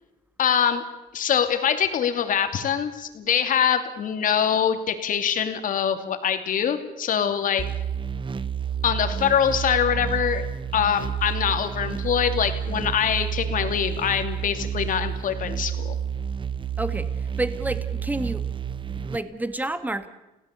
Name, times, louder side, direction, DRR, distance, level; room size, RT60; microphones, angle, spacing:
voice 1, 0.4-0.8 1.1-7.6 8.8-10.4 10.7-15.9, left 8 dB, 55° left, 7 dB, 2.8 m, -24 dB
sound 1, 7.6-19.2, right 8 dB, 30° right, 1.0 m, -30 dB
voice 2, 16.8-18.5 18.9-20.1, right 2 dB, 10° right, 11 dB, 1.9 m, -30 dB
28.5 x 17.5 x 8.4 m, 1.0 s
cardioid pair, 110°, 17 cm